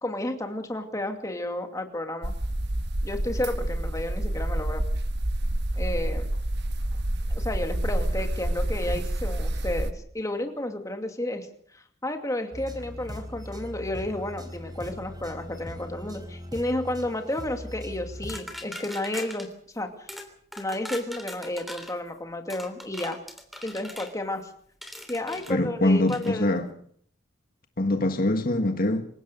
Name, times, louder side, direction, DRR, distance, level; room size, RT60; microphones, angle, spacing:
voice 1, 0.0-2.3 3.0-4.8 5.8-6.3 7.3-11.5 11.7-19.5 19.7-20.1 20.6-23.2 23.6-24.5 25.1-26.5, left 1 dB, 15° left, 2.5 m, -32 dB
sound 1, 2.2-9.9, right 1 dB, 60° right, 1.4 m, -28 dB
sound 2, 12.5-18.4, left 1 dB, 20° right, 4.0 m, -40 dB
sound 3, 18.3-19.5 20.1-20.3 20.5-22.0 22.5-24.1 24.8-25.5 26.1-26.3, equal, ahead, 3.3 m, -40 dB
voice 2, 25.5-26.7 27.8-29.1, left 1 dB, 50° left, 1.6 m, -24 dB
27.0 x 17.0 x 6.8 m
head